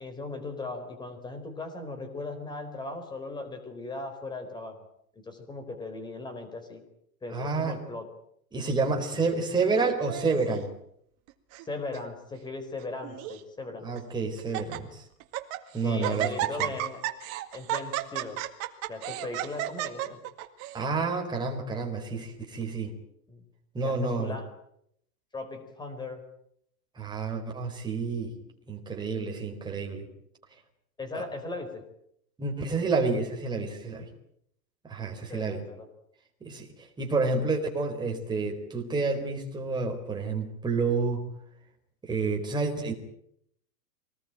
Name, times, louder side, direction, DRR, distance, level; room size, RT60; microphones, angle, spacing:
voice 1, 0.0-4.8 5.1-6.8 7.2-8.1 9.1-9.3 11.6-13.9 15.8-17.0 17.5-18.4 18.9-20.2 23.3-23.4 23.8-24.5 25.3-26.2 31.0-31.8 35.2-35.9, left 3 dB, 10° left, 7 dB, 4.2 m, -38 dB
voice 2, 7.3-7.8 8.5-10.7 13.8-15.0 15.7-16.3 16.6-16.7 20.7-23.0 23.7-24.4 27.0-28.4 28.7-30.1 31.1-31.2 32.4-34.1 34.8-35.6 36.4-41.2 42.0-42.9, right 4 dB, 10° right, 1 dB, 4.3 m, -29 dB
Laughter, 9.8-10.6 11.3-11.7 11.9-12.0 12.8-13.4 14.0-14.1 14.4-14.8 15.2-15.6 16.0-20.8, right 14 dB, 30° right, 2.1 m, -33 dB
24.5 x 20.0 x 9.0 m, 0.72 s
hypercardioid pair, 155°, 48 cm